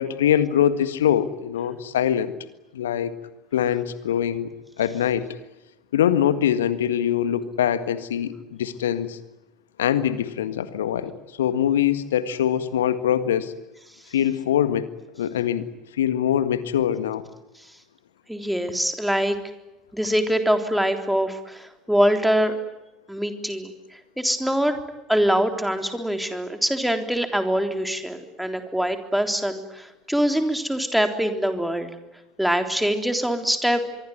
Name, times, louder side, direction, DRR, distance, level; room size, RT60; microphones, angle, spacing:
voice 1, 0.0-2.3 2.7-3.1 3.5-4.5 4.8-5.4 5.9-9.2 9.8-11.1 11.4-13.5 14.1-14.9 15.2-15.7 16.0-17.2, left 10 dB, 70° left, 13 dB, 1.7 m, -23 dB
voice 2, 18.3-19.4 19.9-22.6 23.1-23.7 24.2-24.8 25.1-31.9 32.4-33.8, equal, ahead, 6 dB, 3.6 m, -23 dB
25.0 x 23.5 x 9.5 m, 0.98 s
figure-of-eight pair, 65°, 0 cm